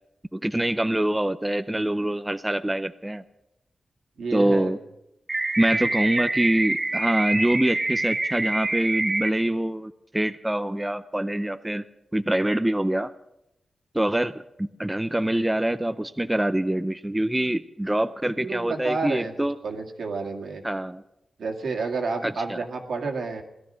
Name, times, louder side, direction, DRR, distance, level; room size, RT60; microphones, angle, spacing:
voice 1, 0.3-3.2 4.3-4.8 5.6-11.8 12.1-13.1 13.9-19.6 20.6-21.0 22.2-22.6, right 1 dB, 10° right, 10 dB, 0.5 m, -25 dB
voice 2, 4.2-4.7 18.4-19.3 19.6-20.6 21.4-23.4, right 4 dB, 80° right, 2 dB, 2.2 m, -30 dB
sound 1, 5.3-9.3, right 2 dB, 25° right, 1.6 m, -26 dB
17.5 x 12.5 x 6.3 m, 0.87 s
wide cardioid pair, 95°, 0 cm